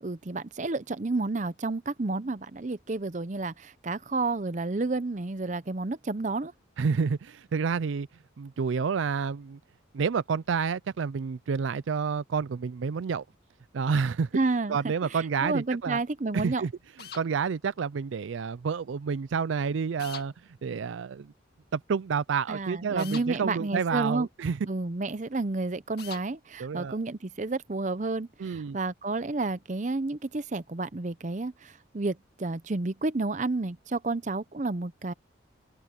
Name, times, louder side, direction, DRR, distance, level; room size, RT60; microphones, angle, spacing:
voice 1, 0.0-6.5 14.3-16.6 22.5-24.3 24.6-35.1, right 3 dB, 40° right, 0.6 m, -31 dB
voice 2, 6.8-8.1 8.4-9.6 9.9-13.2 13.7-14.3 14.7-16.0 16.3-16.7 17.1-20.3 20.6-21.3 21.7-24.6 26.6-27.0 28.4-28.8, right 6 dB, 85° right, 0.4 m, -29 dB
sound 1, 17.0-17.3 20.0-20.3 23.0-23.3 26.0-26.3, left 8 dB, 55° left, 2.1 m, -41 dB
head